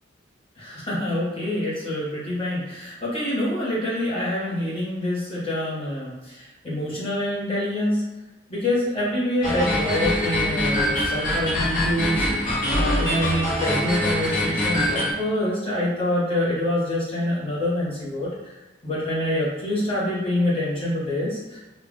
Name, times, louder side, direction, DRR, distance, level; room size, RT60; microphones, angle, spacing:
voice 1, 0.6-8.0 8.5-12.3 12.7-18.3 18.8-21.6, left 1 dB, 30° left, -7 dB, 1.3 m, -26 dB
sound 1, 9.4-15.1, left 1 dB, 45° left, 1.1 m, -24 dB
3.3 x 2.5 x 3.6 m, 1.1 s
head